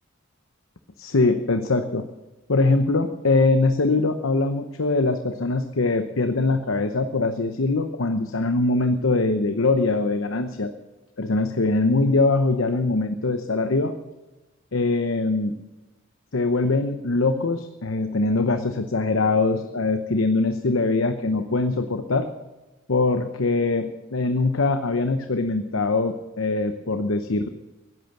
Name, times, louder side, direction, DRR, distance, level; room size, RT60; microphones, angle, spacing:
voice 1, 1.0-2.1 2.5-10.7 11.2-14.0 14.7-15.6 16.3-22.3 22.9-27.5, left 3 dB, 80° left, 8 dB, 0.9 m, -22 dB
16.5 x 11.0 x 6.6 m, 1.1 s
head